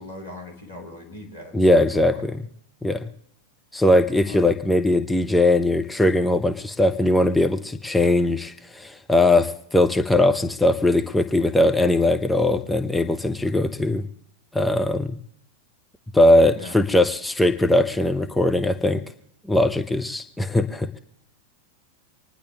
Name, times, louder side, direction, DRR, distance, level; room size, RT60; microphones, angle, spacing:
voice 1, 0.0-1.8 2.1-2.2 4.2-4.5 16.5-16.8, left 1 dB, 80° left, 0 dB, 3.5 m, -40 dB
voice 2, 1.5-2.4 2.8-3.0 3.7-14.1 14.5-15.2 16.1-19.0 19.5-21.0, left 1 dB, 5° left, 6 dB, 0.8 m, -20 dB
26.5 x 10.0 x 3.5 m, 0.71 s
figure-of-eight pair, 90°, 0 cm